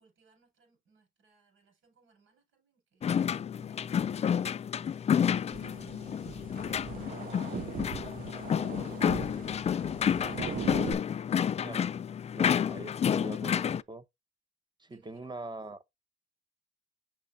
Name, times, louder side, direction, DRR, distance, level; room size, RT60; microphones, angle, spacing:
voice 1, 0.0-6.5 14.9-15.5, right 5 dB, 85° right, 5.0 m, -66 dB
sound 1, 3.0-13.8, left 8 dB, 35° left, 0.3 m, -30 dB
sound 2, 5.5-10.9, right 8 dB, 45° right, 0.6 m, -40 dB
voice 2, 12.3-14.0 14.8-15.8, right 2 dB, 20° right, 0.9 m, -43 dB
6.4 x 6.3 x 2.6 m
cardioid pair, 90°, 20 cm